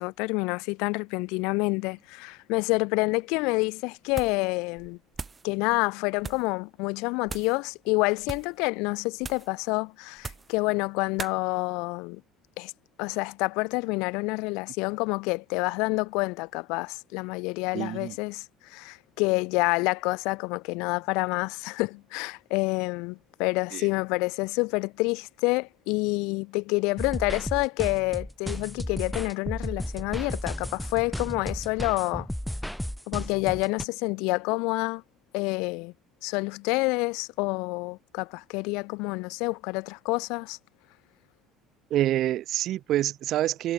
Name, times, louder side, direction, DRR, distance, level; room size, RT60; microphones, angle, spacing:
voice 1, 0.0-5.0 5.4-12.2 12.6-12.7 13.0-18.4 18.7-32.3 33.1-35.0 35.3-35.9 36.2-40.6, left 27 dB, 85° left, 1.8 m, -28 dB
sound 1, 4.1-4.5 4.8-5.5 6.2-6.5 7.2-7.6 8.2-8.6 9.2-9.5 10.2-10.6 11.2-11.4, right 4 dB, 15° right, 1.6 m, -39 dB
voice 2, 17.7-18.1 23.7-23.9 41.9-43.7, right 13 dB, 45° right, 0.7 m, -27 dB
sound 2, 27.0-33.9, equal, ahead, 2.7 m, -34 dB
cardioid pair, 165°, 0 cm